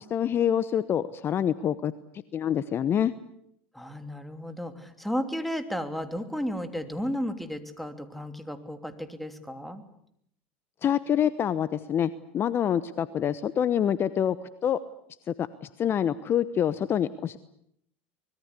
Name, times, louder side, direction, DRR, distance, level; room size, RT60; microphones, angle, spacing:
voice 1, 0.0-1.9 2.3-3.1 10.8-14.4 14.6-14.8 15.4-17.4, left 9 dB, 35° left, 15 dB, 1.0 m, -26 dB
voice 2, 3.7-9.8, equal, ahead, 8 dB, 3.0 m, -33 dB
24.5 x 21.5 x 8.3 m, 0.72 s
hypercardioid pair, 90°, 7 cm